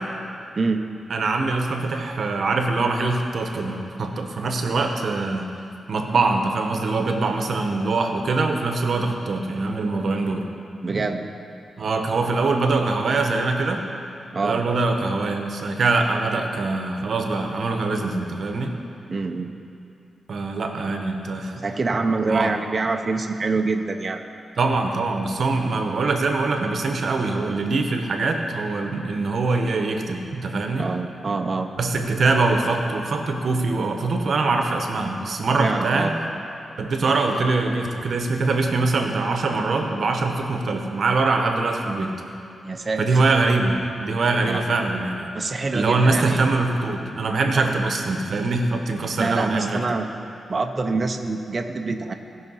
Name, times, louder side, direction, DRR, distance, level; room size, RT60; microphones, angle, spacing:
voice 1, 0.5-0.9 10.8-11.2 14.3-14.6 19.1-19.5 21.6-24.2 30.8-31.7 35.6-36.1 42.6-43.2 44.4-44.6 45.3-46.4 47.5-47.6 49.2-50.1 50.5-52.1, right 3 dB, 30° right, 5 dB, 0.7 m, -25 dB
voice 2, 1.1-5.5 5.9-10.5 11.8-13.8 14.4-18.8 20.3-21.6 22.2-22.5 24.6-30.9 31.8-36.2 36.8-42.1 43.0-45.3 45.7-49.8, right 3 dB, 55° right, 4 dB, 1.0 m, -23 dB
16.5 x 5.7 x 5.6 m, 2.7 s
wide cardioid pair, 135°, 0 cm